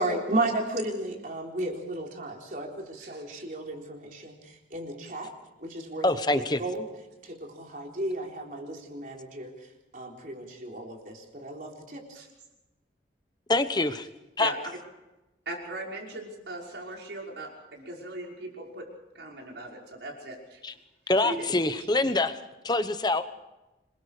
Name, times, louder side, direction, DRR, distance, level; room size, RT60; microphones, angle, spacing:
voice 1, 0.0-5.3 5.6-6.9 7.2-9.5 9.9-12.2, right 2 dB, 50° right, 1 dB, 3.9 m, -34 dB
voice 2, 6.0-6.6 13.5-14.1 14.4-14.5 20.6-20.7 21.1-22.3 22.6-23.2, left 2 dB, 25° left, 11 dB, 1.0 m, -25 dB
voice 3, 15.5-18.9 19.1-20.6 21.2-21.5 21.8-21.9, right 2 dB, 85° right, -1 dB, 5.7 m, -39 dB
26.5 x 22.0 x 5.0 m, 1.0 s
head